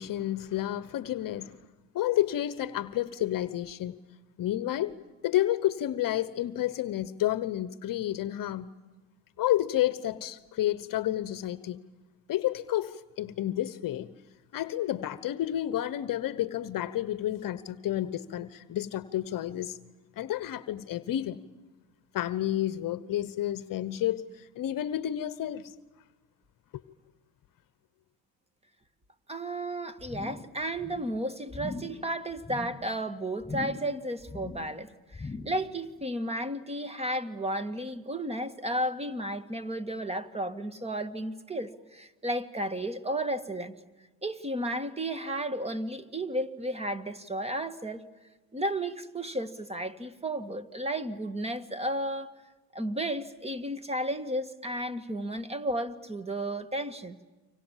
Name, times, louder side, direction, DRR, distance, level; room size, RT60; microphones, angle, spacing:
voice 1, 0.0-1.6 1.9-4.0 4.4-5.0 5.2-8.7 9.4-11.8 12.3-14.1 14.5-19.8 20.2-21.4 22.1-25.7, left 13 dB, 45° left, 1.1 m, -30 dB
voice 2, 29.3-43.8 44.2-48.0 48.5-52.3 52.7-57.2, right 1 dB, 15° right, 1.9 m, -33 dB
sound 1, 30.0-30.5 30.8-31.1 31.5-32.0 32.4-32.8 33.4-34.0 34.2-34.7 35.1-35.7 36.0-36.1, left 3 dB, 10° left, 7.2 m, -40 dB
30.0 x 25.5 x 7.4 m
supercardioid pair, 90°, 45 cm